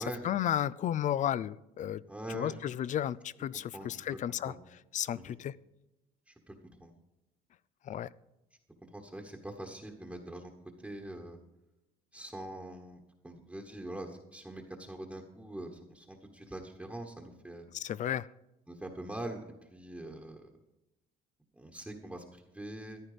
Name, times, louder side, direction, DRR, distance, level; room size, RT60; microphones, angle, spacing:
voice 1, 0.0-2.0 2.3-4.5 4.9-5.6 7.8-8.1 17.7-18.3, left 11 dB, 45° left, 21 dB, 0.4 m, -33 dB
voice 2, 2.1-2.6 3.7-4.0 4.4-4.6 5.1-5.3 6.3-6.5 6.8-6.9 8.9-10.5 10.8-11.4 12.1-17.6 18.7-20.5 21.6-23.0, right 1 dB, 5° right, 2 dB, 1.3 m, -43 dB
14.0 x 10.0 x 5.0 m, 0.94 s
cardioid pair, 110°, 17 cm